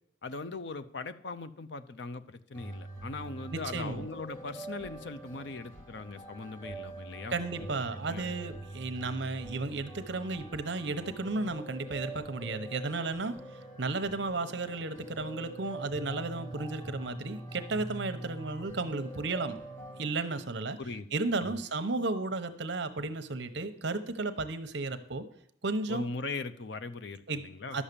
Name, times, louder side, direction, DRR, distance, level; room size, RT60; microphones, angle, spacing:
voice 1, 0.2-8.3 20.8-21.1 21.4-21.6 25.9-27.8, left 3 dB, 60° left, 12 dB, 0.6 m, -40 dB
sound 1, 2.5-20.1, right 1 dB, 10° left, 1.8 m, -44 dB
voice 2, 3.5-4.1 7.3-19.6 20.0-20.8 21.1-25.2 25.6-26.1 27.3-27.8, right 3 dB, 60° right, 10 dB, 0.9 m, -34 dB
11.5 x 7.3 x 6.8 m, 0.69 s
head